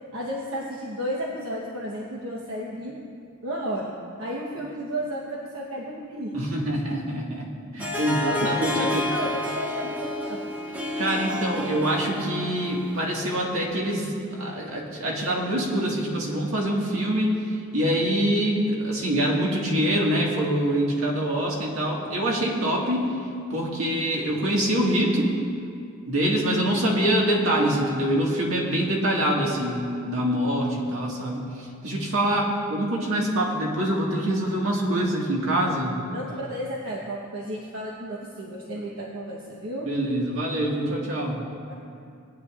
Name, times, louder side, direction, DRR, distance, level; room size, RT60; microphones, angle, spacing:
voice 1, 0.1-2.9 3.4-3.9 4.2-6.3 8.4-10.5 29.4-29.7 36.1-39.9 41.7-41.8, right 1 dB, 70° right, -3 dB, 1.1 m, -32 dB
voice 2, 6.3-9.0 11.0-17.4 17.7-23.1 23.5-25.3 26.1-36.0 39.9-41.4, right 1 dB, 85° right, -2 dB, 1.8 m, -25 dB
Harp, 7.8-13.3, left 2 dB, 10° right, 0.8 m, -30 dB
19.0 x 9.4 x 2.5 m, 2.4 s
head